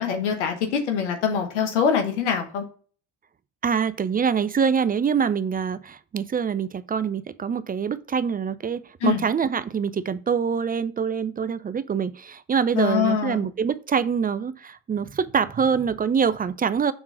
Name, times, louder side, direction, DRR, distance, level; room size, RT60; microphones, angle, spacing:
voice 1, 0.0-2.6 9.0-9.2 12.8-13.5, left 7 dB, 90° left, 1.1 m, -24 dB
voice 2, 3.6-16.9, right 6 dB, 25° right, 0.5 m, -25 dB
6.3 x 3.6 x 4.7 m
hypercardioid pair, 60°, 34 cm